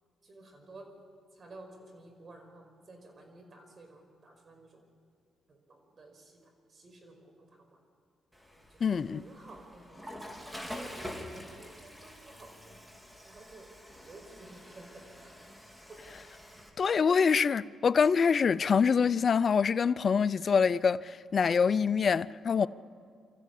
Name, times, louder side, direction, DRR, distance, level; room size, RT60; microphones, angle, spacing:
voice 1, 0.2-0.9 1.4-4.8 5.5-6.3 6.7-7.3 7.6-7.7 8.6-8.8 9.1-10.3 10.7-12.8 13.2-13.7 14.0-15.4 15.9-16.0 22.6-22.7, right 2 dB, 45° right, 5.2 m, -52 dB
Water / Toilet flush, 8.3-16.7, equal, 5° right, 3.7 m, -46 dB
voice 2, 8.8-9.2 16.8-22.7, left 6 dB, 50° left, 0.5 m, -25 dB
25.5 x 14.0 x 8.4 m
cardioid pair, 70°, 0 cm